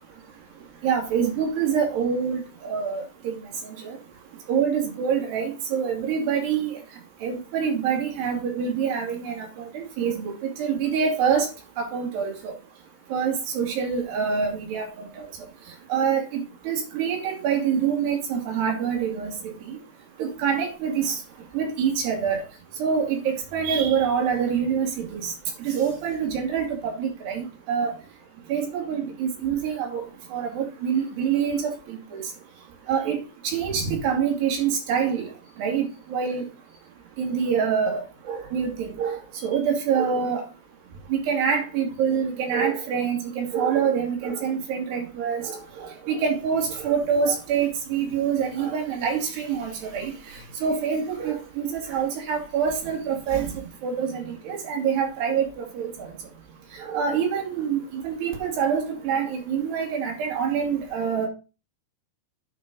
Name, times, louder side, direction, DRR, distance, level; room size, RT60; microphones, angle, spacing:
voice 1, 0.8-3.4 4.5-6.7 7.2-9.3 10.0-10.3 10.6-11.5 11.8-12.3 13.1-14.9 15.2-15.3 15.9-16.2 16.7-19.3 20.2-21.2 21.5-22.4 22.8-23.2 23.5-25.3 25.6-26.7 27.0-27.9 28.5-30.0 30.3-31.7 32.1-32.2 32.9-33.2 33.5-35.3 35.6-35.9 36.1-36.4 37.2-38.0 38.3-40.4 41.1-45.6 46.1-50.1 50.6-53.5 53.8-55.4 55.8-56.1 56.8-61.3, right 7 dB, 80° right, 4.5 m, -25 dB
9.3 x 5.4 x 5.3 m
omnidirectional pair, 4.7 m